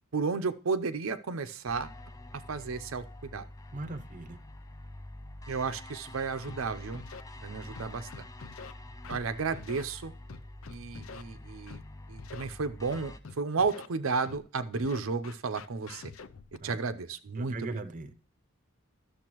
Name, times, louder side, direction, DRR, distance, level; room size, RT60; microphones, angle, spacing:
voice 1, 0.1-1.9 2.5-3.5 5.5-7.0 7.4-8.3 9.1-10.1 10.7-11.8 12.1-16.1 16.6-17.7, right 4 dB, 80° right, 10 dB, 0.6 m, -33 dB
sound 1, 1.7-13.2, left 1 dB, 15° left, 0.4 m, -47 dB
voice 2, 3.7-4.4 16.6-16.8 17.4-18.1, right 2 dB, 40° right, 10 dB, 0.6 m, -39 dB
Scratching (performance technique), 6.4-6.6 6.9-7.2 7.7-8.7 9.0-9.2 9.5-9.8 10.3-11.2 11.7-11.8 12.2-12.4 12.9-13.9 14.2-14.4 14.7-16.6, left 4 dB, 80° left, 0.6 m, -45 dB
12.0 x 6.8 x 3.0 m, 0.39 s
head